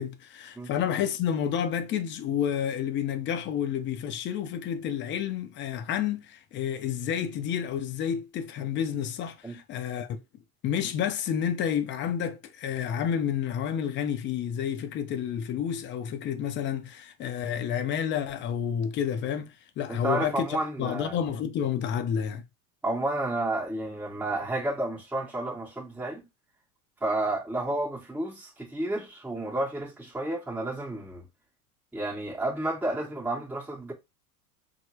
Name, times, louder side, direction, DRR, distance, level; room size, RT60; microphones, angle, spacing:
voice 1, 0.0-10.2 10.6-20.5 20.8-22.4, left 8 dB, 25° left, 0.5 m, -30 dB
voice 2, 19.9-21.2 22.8-26.2 27.0-31.3 31.9-33.9, right 2 dB, 5° right, 1.0 m, -31 dB
3.1 x 2.0 x 3.0 m
hypercardioid pair, 85°, 46 cm